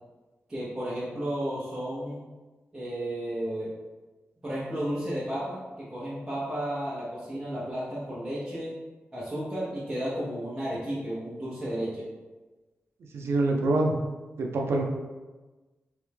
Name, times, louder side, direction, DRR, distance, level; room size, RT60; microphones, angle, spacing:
voice 1, 0.5-2.2 2.7-3.7 4.4-8.7 9.1-12.0, right 1 dB, 15° right, -9 dB, 0.7 m, -33 dB
voice 2, 13.1-13.9 14.4-14.8, right 2 dB, 85° right, 1 dB, 0.5 m, -25 dB
3.4 x 3.1 x 3.3 m, 1.2 s
wide cardioid pair, 175°, 4 cm